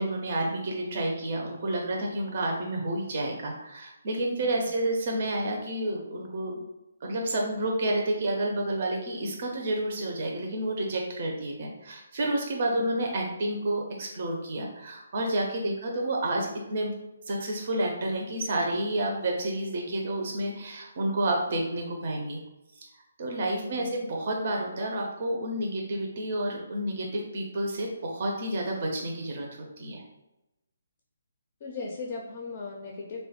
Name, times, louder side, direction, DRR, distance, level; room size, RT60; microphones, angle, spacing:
voice 1, 0.0-6.6 7.0-16.9 17.3-22.4 22.8-22.9 23.2-29.5 29.8-30.0, right 1 dB, 40° right, 1 dB, 0.5 m, -30 dB
voice 2, 12.7-13.0 15.6-15.8 21.5-21.7 23.6-23.9 31.6-33.2, left 3 dB, 35° left, 0 dB, 0.4 m, -39 dB
3.1 x 2.2 x 2.8 m, 0.94 s
figure-of-eight pair, 140°, 0 cm